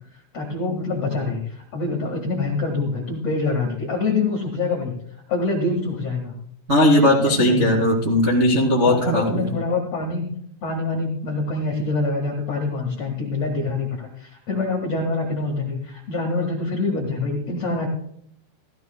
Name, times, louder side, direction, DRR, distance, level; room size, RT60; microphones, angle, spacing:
voice 1, 0.1-4.9 5.3-6.3 7.2-7.9 8.8-10.3 10.6-17.9, left 3 dB, 60° left, -1 dB, 1.7 m, -25 dB
voice 2, 6.7-9.5, left 1 dB, 25° right, -4 dB, 1.7 m, -18 dB
16.5 x 15.0 x 2.2 m, 0.70 s
omnidirectional pair, 5.7 m